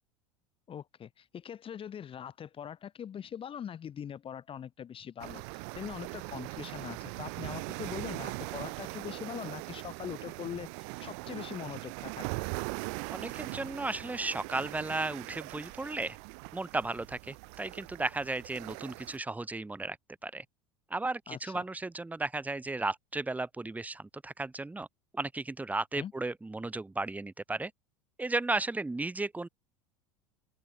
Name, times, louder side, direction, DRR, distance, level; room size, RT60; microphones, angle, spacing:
voice 1, 0.7-10.7 11.0-12.4 21.3-21.6 25.9-26.1, left 8 dB, 30° left, 2.6 m, -42 dB
sound 1, 5.2-19.2, right 40 dB or more, 50° right, 0.5 m, -41 dB
voice 2, 13.1-16.2 16.5-20.0 20.2-20.4 20.9-24.9 25.1-27.7 28.2-29.5, right 2 dB, 10° right, 1.7 m, -34 dB
open air
figure-of-eight pair, 75°, 18 cm